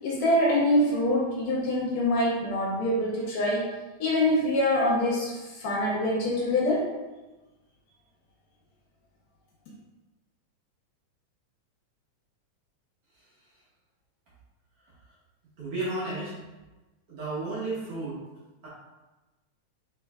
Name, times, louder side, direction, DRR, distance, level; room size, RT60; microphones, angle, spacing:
voice 1, 0.0-3.7 4.0-6.9, left 1 dB, 70° left, -4 dB, 1.8 m, -25 dB
voice 2, 15.6-16.4 17.1-18.2 18.6-18.7, right 2 dB, 65° right, -8 dB, 1.6 m, -32 dB
4.3 x 4.3 x 2.3 m, 1.1 s
omnidirectional pair, 3.5 m